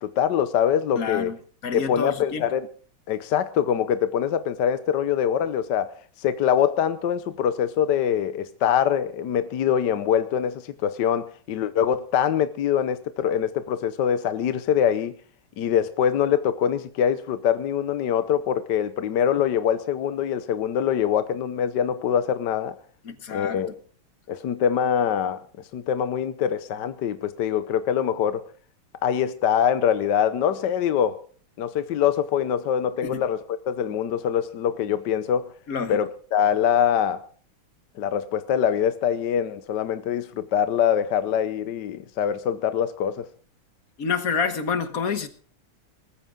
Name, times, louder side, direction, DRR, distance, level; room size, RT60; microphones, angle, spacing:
voice 1, 0.0-1.3 1.7-2.7 3.1-15.1 15.6-22.8 23.3-23.7 24.3-25.4 25.7-28.4 29.0-31.2 31.6-35.5 35.9-37.3 38.0-43.3, left 9 dB, 65° left, 1.3 m, -24 dB
voice 2, 1.0-1.4 1.6-2.4 23.1-23.6 33.0-33.2 35.7-36.0 44.0-45.3, left 5 dB, 45° left, 1.6 m, -28 dB
20.0 x 14.5 x 3.7 m
omnidirectional pair, 2.4 m